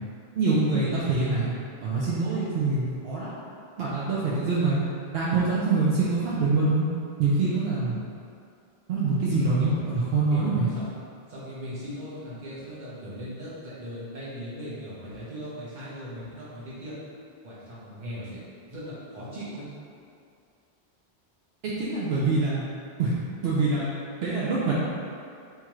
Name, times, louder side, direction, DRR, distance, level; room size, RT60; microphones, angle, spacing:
voice 1, 0.3-1.5 1.8-3.3 3.8-4.8 5.1-6.9 7.2-8.0 8.9-10.7 21.6-22.6 23.0-23.2 23.4-23.9 24.2-24.8, right 3 dB, 75° right, -7 dB, 0.8 m, -25 dB
voice 2, 9.3-9.7 10.3-10.9 11.3-17.0 17.4-18.4 18.7-19.7, equal, 50° right, -9 dB, 1.1 m, -38 dB
3.6 x 2.9 x 3.0 m, 2.4 s
omnidirectional pair, 1.1 m